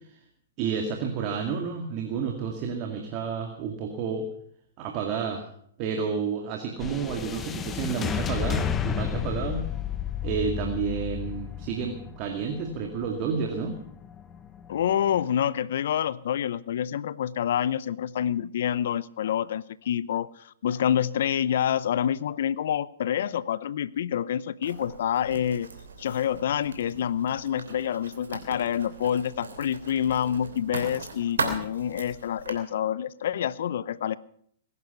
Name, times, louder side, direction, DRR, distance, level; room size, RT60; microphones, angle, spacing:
voice 1, 0.6-4.3 4.8-5.5 5.8-9.7 10.2-13.8, right 6 dB, 40° right, 3 dB, 2.2 m, -30 dB
sound 1, 6.8-15.2, left 8 dB, 20° left, 1.0 m, -33 dB
voice 2, 14.7-25.7 26.0-34.2, left 9 dB, 65° left, 20 dB, 0.7 m, -27 dB
Writing, 24.6-32.5, right 4 dB, 80° right, 3.0 m, -38 dB
20.0 x 11.0 x 5.8 m, 0.64 s
hypercardioid pair, 115°, 0 cm